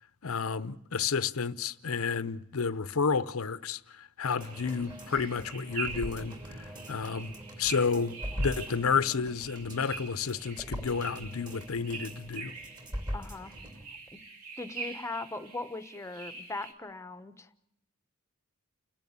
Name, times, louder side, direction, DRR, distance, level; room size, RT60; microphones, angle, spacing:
voice 1, 0.2-12.5, left 5 dB, 75° left, 0.7 m, -31 dB
sound 1, 4.4-13.8 14.2-14.3, equal, 20° right, 2.6 m, -41 dB
sound 2, 4.4-16.7, right 5 dB, 80° right, 2.6 m, -45 dB
voice 2, 13.1-13.5 14.6-17.5, left 2 dB, 15° left, 0.9 m, -39 dB
30.0 x 10.5 x 8.7 m
head